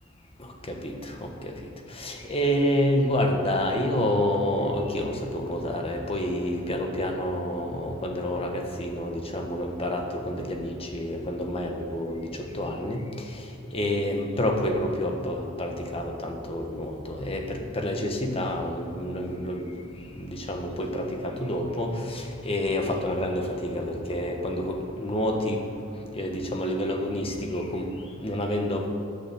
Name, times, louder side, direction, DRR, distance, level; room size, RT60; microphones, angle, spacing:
voice 1, 0.7-1.5 2.0-12.3 12.5-13.0 13.7-19.7 20.2-25.6 26.1-27.9 28.2-28.9, left 1 dB, 30° left, 3 dB, 1.3 m, -28 dB
10.5 x 8.4 x 7.8 m, 2.4 s
head